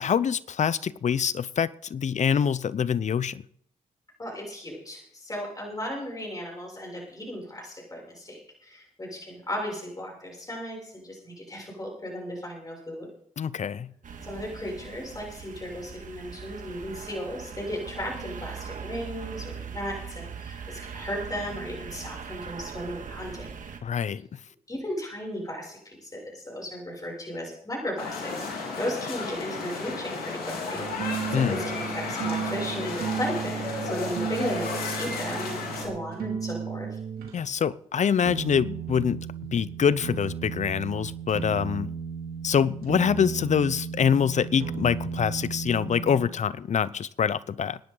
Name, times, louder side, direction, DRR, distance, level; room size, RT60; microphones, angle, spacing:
voice 1, 0.0-3.4 13.4-13.9 23.8-24.2 31.3-31.6 37.3-39.3 39.5-41.9 42.4-47.8, left 7 dB, 50° left, 0.7 m, -25 dB
voice 2, 4.2-13.1 14.2-23.5 24.7-37.0, equal, 25° left, 7.1 m, -35 dB
sound 1, 14.0-23.8, right 6 dB, 60° right, 2.0 m, -40 dB
sound 2, 28.0-35.8, left 4 dB, 80° left, 3.5 m, -33 dB
sound 3, 30.7-37.4 38.2-46.3, right 7 dB, 80° right, 3.1 m, -34 dB
25.0 x 10.5 x 4.0 m
cardioid pair, 65°, 15 cm